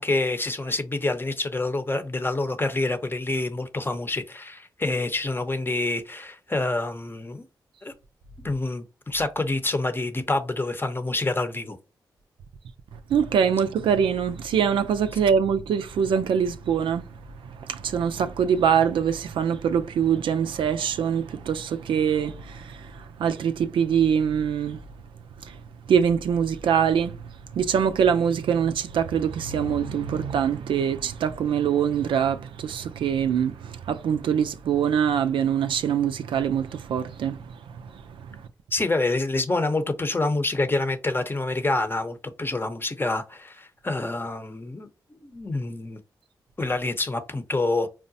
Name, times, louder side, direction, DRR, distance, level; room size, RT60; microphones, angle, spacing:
voice 1, 0.0-7.5 7.8-7.9 8.4-11.8 38.7-46.0 46.6-47.9, left 2 dB, 25° left, 0.7 m, -27 dB
voice 2, 12.9-17.0 17.6-24.8 25.4-25.6 25.9-27.2 27.5-38.4, right 7 dB, 80° right, 0.4 m, -24 dB
4.7 x 2.1 x 2.6 m
cardioid pair, 50°, 8 cm